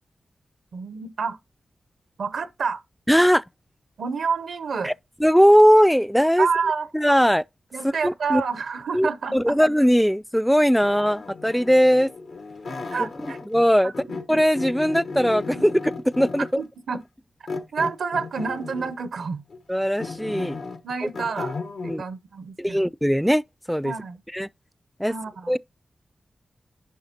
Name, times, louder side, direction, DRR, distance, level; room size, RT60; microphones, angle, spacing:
voice 1, 0.7-1.4 2.2-2.8 4.0-4.9 6.4-6.9 7.7-9.6 12.9-13.4 13.8-13.9 15.5-15.7 16.6-17.0 17.7-19.4 20.8-21.6 21.8-22.8 23.8-24.2 25.1-25.6, right 5 dB, 85° right, 0.7 m, -28 dB
voice 2, 3.1-3.4 4.8-4.9 5.2-6.5 6.9-7.4 7.8-8.4 8.9-12.1 13.0-13.1 13.5-15.7 16.2-16.6 19.7-20.6 21.8-22.0 22.6-23.4 23.7-23.9 24.3-24.5 25.0-25.2 25.5-25.6, equal, ahead, 0.3 m, -19 dB
sound 1, 10.8-13.7 13.9-16.6 17.5-19.0 19.5-22.0, left 4 dB, 80° left, 1.2 m, -35 dB
10.5 x 5.6 x 2.8 m
cardioid pair, 55°, 0 cm